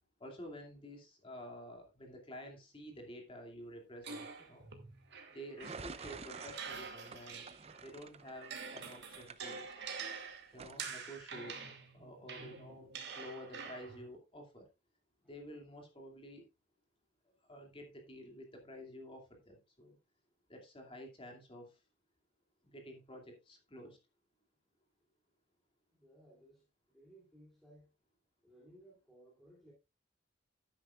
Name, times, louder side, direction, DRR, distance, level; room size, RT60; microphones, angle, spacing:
voice 1, 0.2-4.7 5.3-7.5 7.8-9.6 10.5-12.9 13.2-14.7 15.2-16.5 17.5-20.0 20.5-21.7 22.6-24.0, equal, 25° left, 2.5 m, -50 dB
sound 1, 4.0-7.9 8.2-14.1, right 5 dB, 55° right, 2.4 m, -46 dB
sound 2, 5.6-10.2 10.5-10.8, right 4 dB, 30° right, 0.6 m, -49 dB
voice 2, 25.9-26.7 26.9-27.9 28.4-29.7, right 1 dB, ahead, 2.8 m, -61 dB
12.0 x 9.9 x 2.4 m
head